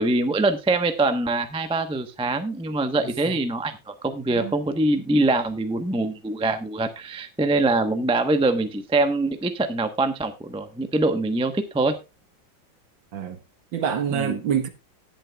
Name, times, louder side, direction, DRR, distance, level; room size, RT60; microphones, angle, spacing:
voice 1, 0.0-12.0 14.1-14.4, right 2 dB, 5° right, 0.5 m, -24 dB
voice 2, 3.0-3.4 4.3-4.5 13.1-13.4 13.7-14.7, right 8 dB, 70° right, 2.1 m, -27 dB
19.0 x 7.4 x 2.3 m
omnidirectional pair, 2.2 m